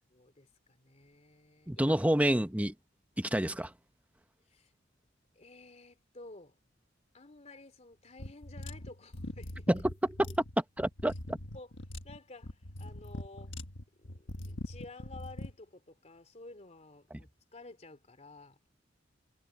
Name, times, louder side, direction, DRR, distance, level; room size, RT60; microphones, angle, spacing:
voice 1, 0.1-2.0 4.5-4.7 5.3-6.6 7.1-9.8 11.5-11.7 12.0-13.6 14.0-18.6, left 2 dB, 35° left, 2.9 m, -52 dB
voice 2, 1.7-2.7 3.2-3.7 9.7-9.8 10.6-11.4 17.1-17.2, right 1 dB, 10° right, 1.1 m, -28 dB
sound 1, 8.2-15.5, left 1 dB, 75° left, 1.5 m, -43 dB
head